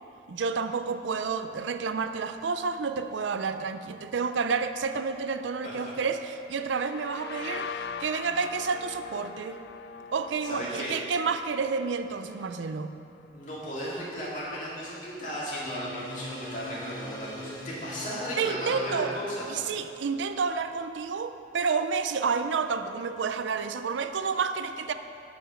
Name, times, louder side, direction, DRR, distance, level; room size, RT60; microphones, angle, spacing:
voice 1, 0.3-9.6 10.1-12.9 18.4-19.1 19.5-24.9, right 5 dB, 85° right, 9 dB, 0.5 m, -30 dB
voice 2, 5.6-6.0 10.4-10.9 13.3-19.5, equal, 45° left, -7 dB, 2.4 m, -35 dB
sound 1, 6.6-14.2, left 5 dB, 65° left, 0.3 m, -42 dB
sound 2, 15.6-20.5, equal, 25° left, 1.6 m, -43 dB
11.0 x 5.1 x 6.3 m, 2.6 s
head